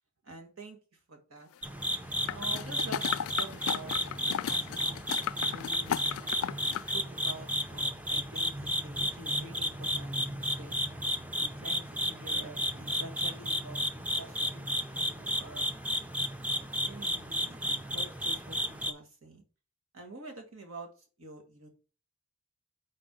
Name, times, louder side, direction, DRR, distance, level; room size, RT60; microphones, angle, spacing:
voice 1, 0.2-1.5 2.3-6.0 6.6-10.8 11.4-13.8 14.2-15.7 16.6-19.4 19.9-21.7, right 2 dB, 80° right, 3 dB, 1.6 m, -48 dB
sound 1, 1.6-18.9, equal, 5° right, 0.5 m, -33 dB
sound 2, 2.3-6.9 7.3-7.4, left 9 dB, 85° left, 0.3 m, -35 dB
6.1 x 4.3 x 5.1 m, 0.35 s
head